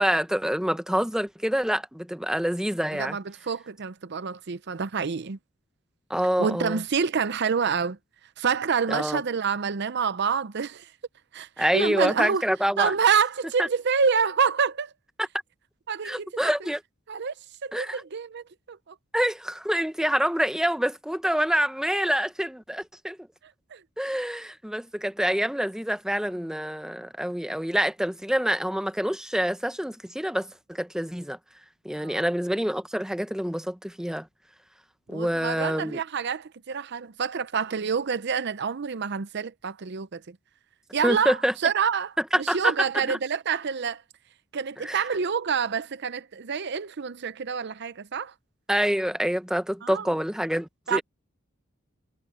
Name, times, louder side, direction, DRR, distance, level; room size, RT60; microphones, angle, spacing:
voice 1, 0.0-3.2 6.1-6.8 8.9-9.2 11.6-12.9 13.6-13.7 15.2-15.3 16.0-16.8 17.7-18.0 19.1-23.2 24.0-31.4 31.8-34.3 35.1-36.0 41.0-41.5 42.3-42.7 43.1-43.2 44.8-45.0 48.7-51.0, equal, 5° right, 1.0 m, -26 dB
voice 2, 2.9-5.4 6.4-8.0 8.4-10.9 11.3-12.4 12.8-14.9 15.9-16.5 17.1-17.3 17.6-18.9 23.7-23.8 31.9-32.2 35.1-40.4 40.9-44.0 44.5-48.3 49.8-50.1 50.9-51.0, right 6 dB, 55° right, 0.6 m, -27 dB
head